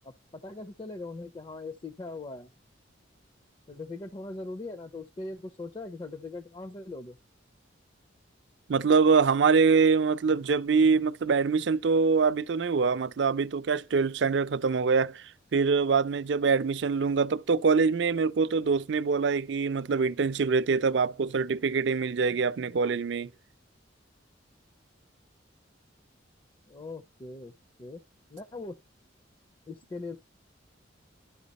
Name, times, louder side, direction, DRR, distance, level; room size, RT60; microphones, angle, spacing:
voice 1, 0.0-2.5 3.7-7.2 26.7-27.5 27.8-28.0 28.3-28.8 29.7-30.2, left 2 dB, 25° left, 0.4 m, -40 dB
voice 2, 8.7-23.3, right 5 dB, 65° right, 0.4 m, -24 dB
11.5 x 5.7 x 4.1 m
head